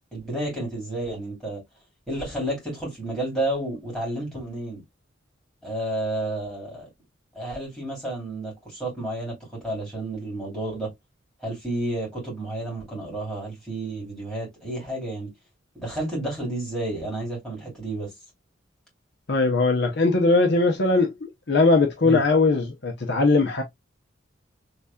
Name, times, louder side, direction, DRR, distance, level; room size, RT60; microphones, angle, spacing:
voice 1, 0.1-1.6 2.1-4.8 5.6-6.9 7.3-10.9 11.4-15.3 15.7-18.1 22.0-22.2, right 1 dB, ahead, 3.0 m, -31 dB
voice 2, 19.3-21.1 21.5-23.6, left 3 dB, 60° left, 0.8 m, -20 dB
4.1 x 3.3 x 2.3 m
head